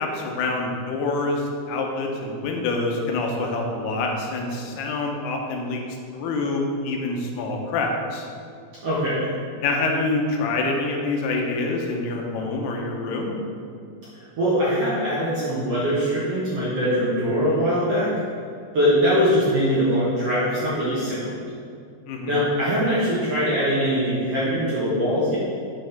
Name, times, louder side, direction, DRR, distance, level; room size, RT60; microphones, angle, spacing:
voice 1, 0.0-5.8 6.1-8.3 9.6-13.3 22.1-22.4, left 3 dB, 85° left, 1 dB, 2.9 m, -26 dB
voice 2, 8.8-9.3 14.1-18.1 18.7-21.3 22.3-25.4, equal, 60° right, -9 dB, 1.7 m, -22 dB
8.4 x 6.3 x 3.5 m, 2.3 s
omnidirectional pair, 4.5 m